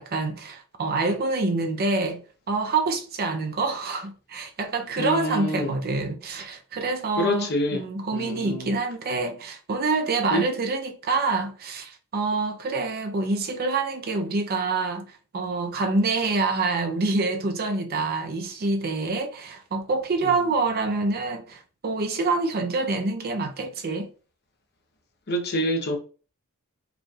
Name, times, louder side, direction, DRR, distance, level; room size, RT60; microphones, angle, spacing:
voice 1, 0.0-2.2 2.5-15.1 15.3-24.1, right 3 dB, 45° right, 0.6 m, -26 dB
voice 2, 5.0-5.8 7.2-7.8 8.1-8.7 10.3-10.5 20.3-20.4 25.3-26.0, equal, 50° left, 0.9 m, -26 dB
4.9 x 3.2 x 2.4 m
head